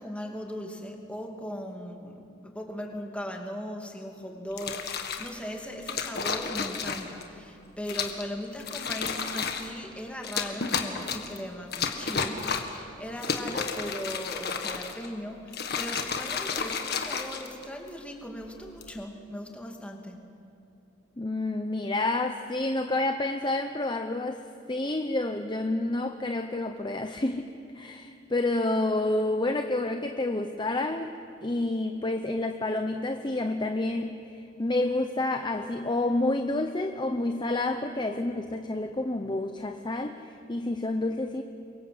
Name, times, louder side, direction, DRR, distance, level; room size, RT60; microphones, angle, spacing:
voice 1, 0.0-20.2, equal, 5° left, 1 dB, 2.6 m, -38 dB
sound 1, 4.5-5.3 5.9-7.2 7.9-8.3 8.6-9.7 10.2-11.4 11.7-12.8 13.2-15.1 15.5-17.9 18.6-19.0, left 5 dB, 55° left, 1.8 m, -32 dB
voice 2, 21.2-27.5 27.7-31.1 31.4-41.4, left 2 dB, 25° left, 6 dB, 0.8 m, -29 dB
27.0 x 23.5 x 7.9 m, 2.7 s
head